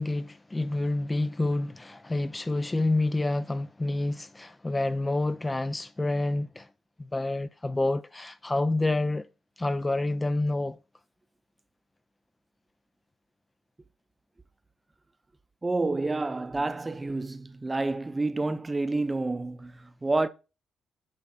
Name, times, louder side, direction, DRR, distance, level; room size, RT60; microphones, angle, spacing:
voice 1, 0.0-6.7 7.0-9.3 9.6-10.8, left 2 dB, 15° left, 0.3 m, -28 dB
voice 2, 15.6-20.3, right 2 dB, 20° right, 0.6 m, -29 dB
8.7 x 5.1 x 3.8 m
cardioid pair, 90°, 0 cm